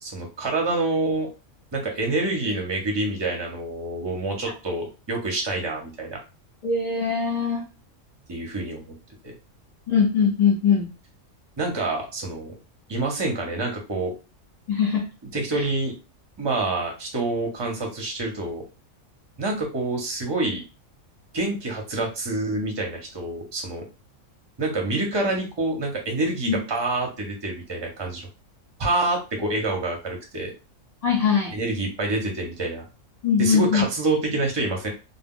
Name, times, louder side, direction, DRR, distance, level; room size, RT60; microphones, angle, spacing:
voice 1, 0.0-1.3 1.7-6.2 8.3-8.9 11.6-12.5 12.9-14.1 15.3-15.9 16.4-18.6 19.4-20.6 21.3-23.8 24.6-28.3 28.8-30.5 31.5-32.8 33.4-34.9, right 2 dB, 30° right, 1 dB, 0.6 m, -27 dB
voice 2, 6.6-7.6 9.9-10.9 14.7-15.0 15.5-15.7 26.5-26.6 31.0-31.5 33.2-33.8, left 6 dB, 35° left, -3 dB, 0.7 m, -21 dB
2.2 x 2.0 x 3.6 m, 0.31 s
omnidirectional pair, 1.3 m